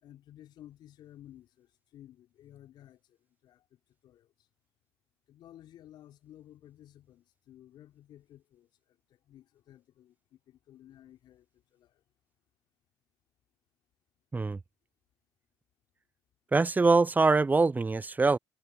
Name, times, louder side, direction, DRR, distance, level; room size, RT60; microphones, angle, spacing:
voice 1, 0.0-3.2 3.4-4.3 5.3-12.0, left 12 dB, 65° left, 4.5 m, -55 dB
voice 2, 16.5-18.4, right 3 dB, 20° right, 0.5 m, -24 dB
hypercardioid pair, 55°, 8 cm